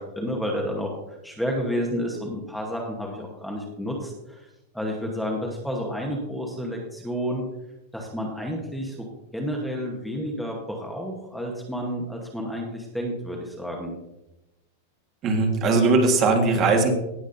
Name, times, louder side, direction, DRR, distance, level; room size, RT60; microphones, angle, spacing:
voice 1, 0.0-4.5 4.7-7.4 7.9-9.1 9.3-14.0, equal, ahead, 0 dB, 1.0 m, -30 dB
voice 2, 15.2-16.9, right 3 dB, 25° right, 4 dB, 1.5 m, -19 dB
18.0 x 7.2 x 2.6 m, 0.95 s
supercardioid pair, 170°, 0 cm